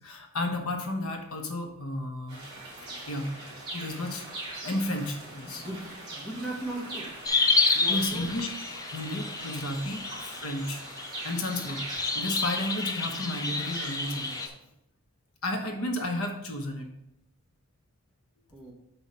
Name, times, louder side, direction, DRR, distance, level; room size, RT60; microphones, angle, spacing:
voice 1, 0.0-2.4 3.1-3.3 3.7-4.3 4.6-5.6 7.9-8.5 8.9-10.8 11.2-11.8 12.1-14.5 15.4-16.9, left 1 dB, 75° left, 3 dB, 1.1 m, -32 dB
sound 1, 2.3-14.5, right 1 dB, 20° right, 2.9 m, -42 dB
voice 2, 5.4-7.1 7.7-8.3 15.7-15.8 18.5-18.7, right 1 dB, ahead, -3 dB, 1.5 m, -38 dB
sound 2, 7.2-14.5, left 3 dB, 15° left, 0.5 m, -30 dB
6.9 x 5.7 x 4.2 m, 0.82 s
head